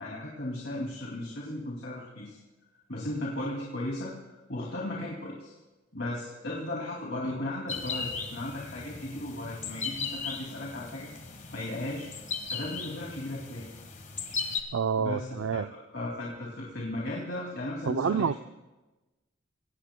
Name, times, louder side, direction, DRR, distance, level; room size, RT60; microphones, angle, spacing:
voice 1, 0.0-2.4 2.9-4.1 4.5-5.6 5.9-11.1 11.5-12.1 12.5-13.7 15.0-18.3, left 1 dB, 60° left, 2.5 m, -36 dB
sound 1, 7.7-14.6, left 5 dB, 40° left, 1.5 m, -37 dB
voice 2, 14.7-15.7 17.9-18.3, right 6 dB, 80° right, 0.4 m, -28 dB
26.0 x 18.0 x 2.2 m
head